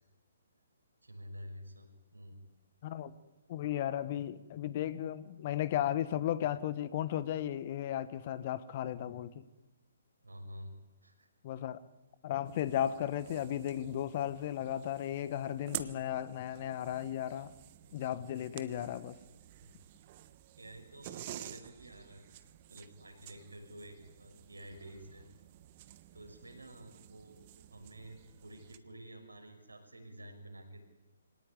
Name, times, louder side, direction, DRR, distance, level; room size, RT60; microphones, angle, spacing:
voice 1, 1.0-2.3 10.2-10.7 11.0-11.3 17.8-18.2 19.6-19.7 20.6-22.4 22.7-25.3 26.1-27.4 27.7-30.8, equal, 80° right, 4 dB, 6.2 m, -50 dB
voice 2, 2.8-3.1 3.5-9.4 11.4-11.8 12.2-17.5 17.9-19.2, left 11 dB, 40° left, 16 dB, 1.3 m, -35 dB
sound 1, 12.4-28.8, right 13 dB, 35° right, 1.2 m, -50 dB
24.0 x 18.5 x 9.8 m, 1.0 s
figure-of-eight pair, 130°, 0 cm